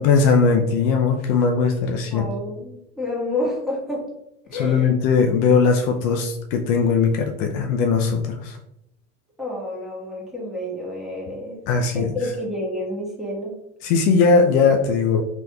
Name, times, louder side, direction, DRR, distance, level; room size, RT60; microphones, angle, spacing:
voice 1, 0.0-2.3 4.5-8.6 11.7-12.1 13.8-15.2, left 5 dB, 60° left, 4 dB, 0.5 m, -19 dB
voice 2, 2.1-4.1 4.5-4.9 9.4-11.6 11.9-13.5, left 1 dB, ahead, -5 dB, 1.4 m, -29 dB
3.2 x 3.0 x 2.2 m, 0.81 s
hypercardioid pair, 90°, 33 cm